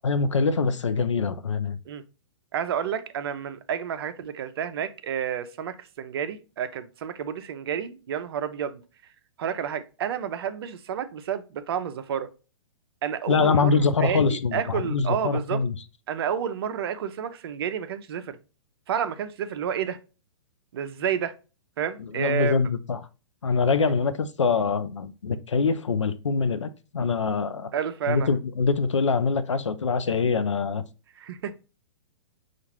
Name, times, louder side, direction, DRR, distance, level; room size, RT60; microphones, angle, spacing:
voice 1, 0.0-1.8 13.3-15.8 22.0-23.0 23.4-27.7 28.1-30.8, left 4 dB, 85° left, 0.5 m, -24 dB
voice 2, 2.5-8.8 9.4-12.3 13.0-15.6 16.1-18.4 18.9-20.0 20.7-21.4 21.8-22.6 27.7-28.3 31.2-31.5, right 8 dB, 55° right, 0.6 m, -30 dB
5.7 x 2.5 x 2.9 m
figure-of-eight pair, 115°, 15 cm